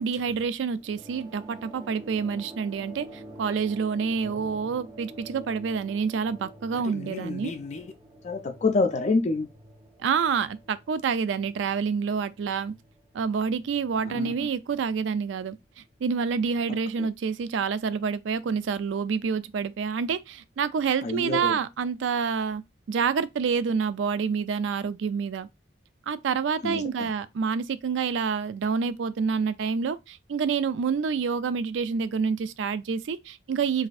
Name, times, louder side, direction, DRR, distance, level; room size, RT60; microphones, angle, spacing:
voice 1, 0.0-7.5 10.0-12.7 13.1-15.6 16.0-22.6 22.9-25.5 26.1-33.9, right 6 dB, 85° right, 0.4 m, -28 dB
sound 1, 0.8-15.7, right 1 dB, 20° right, 0.6 m, -48 dB
voice 2, 4.2-4.8 6.7-7.9 8.2-9.5 14.0-14.5 16.7-17.1 21.0-21.6 26.6-27.1, left 3 dB, 40° left, 0.4 m, -29 dB
4.0 x 2.6 x 2.4 m
head